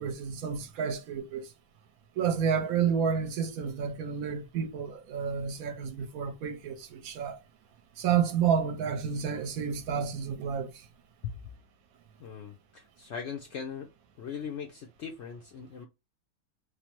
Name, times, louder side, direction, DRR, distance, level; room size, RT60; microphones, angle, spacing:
voice 1, 0.0-1.4 2.2-7.4 8.0-10.7, right 7 dB, 70° right, 1.1 m, -30 dB
voice 2, 12.2-13.9 14.2-15.9, left 7 dB, 65° left, 0.7 m, -39 dB
3.2 x 2.0 x 2.9 m
omnidirectional pair, 1.6 m